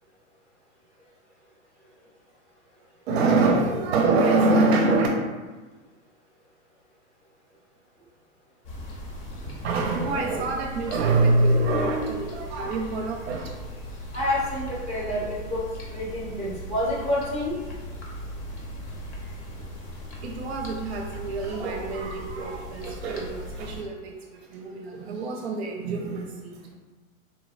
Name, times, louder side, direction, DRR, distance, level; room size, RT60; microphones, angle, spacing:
voice 1, 3.1-5.1 9.3-13.5 20.2-26.7, right 3 dB, 50° right, 1 dB, 0.5 m, -25 dB
sound 1, 8.6-23.8, equal, 55° left, 0.9 m, -38 dB
voice 2, 14.1-17.6, left 1 dB, 15° left, -7 dB, 0.7 m, -28 dB
3.6 x 2.1 x 2.4 m, 1.2 s
hypercardioid pair, 140°, 41 cm